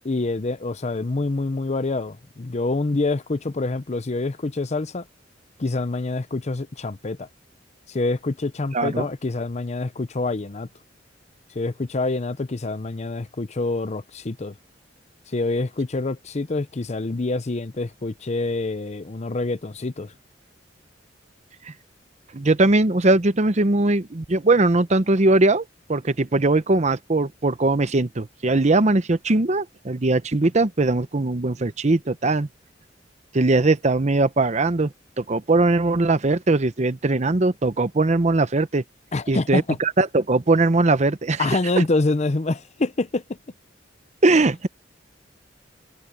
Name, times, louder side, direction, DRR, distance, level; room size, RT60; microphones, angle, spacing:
voice 1, 0.0-5.0 5.6-7.3 7.9-10.7 11.5-14.5 15.3-20.1 39.1-39.8 41.4-43.2, left 2 dB, 40° left, 0.7 m, -26 dB
voice 2, 8.7-9.1 21.7-21.8 22.3-32.5 33.3-38.8 39.3-41.5 44.2-44.7, right 2 dB, 40° right, 0.8 m, -20 dB
head